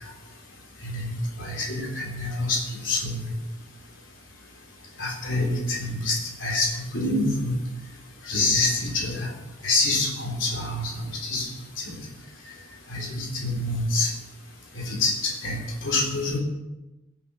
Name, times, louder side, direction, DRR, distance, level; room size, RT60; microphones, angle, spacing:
voice 1, 0.8-3.3 5.0-7.6 8.2-9.3 9.6-11.5 11.8-12.0 12.9-14.1 14.7-16.4, left 2 dB, 70° left, -1 dB, 3.6 m, -26 dB
18.0 x 8.9 x 5.6 m, 1.0 s
head